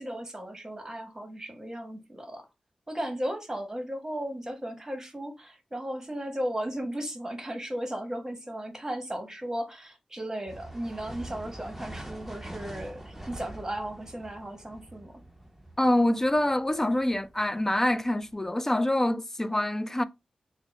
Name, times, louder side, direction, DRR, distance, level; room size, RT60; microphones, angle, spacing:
voice 1, 0.0-2.4 2.9-15.1, right 1 dB, 25° right, 1.2 m, -35 dB
sound 1, 10.5-18.5, right 1 dB, 5° right, 0.8 m, -45 dB
voice 2, 15.8-20.0, left 1 dB, 20° left, 0.4 m, -25 dB
3.5 x 2.1 x 4.0 m
cardioid pair, 45°, 2 cm